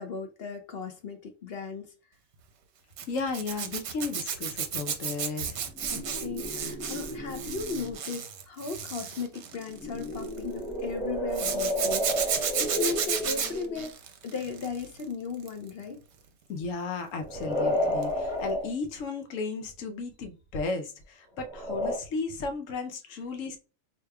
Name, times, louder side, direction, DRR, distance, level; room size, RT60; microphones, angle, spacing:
voice 1, 0.0-1.9 5.9-13.9 14.2-16.0, left 4 dB, 60° left, 0.7 m, -37 dB
Zipper (clothing), 3.0-10.4 11.3-15.0 15.3-15.7 18.0-18.2 18.4-18.5, right 7 dB, 65° right, 0.9 m, -33 dB
voice 2, 3.1-5.7 16.5-23.6, left 4 dB, 80° left, 1.1 m, -34 dB
sound 1, 5.7-8.0 9.6-13.9 17.1-18.7 21.4-22.0, equal, 5° right, 0.8 m, -32 dB
4.9 x 2.8 x 2.2 m
omnidirectional pair, 1.3 m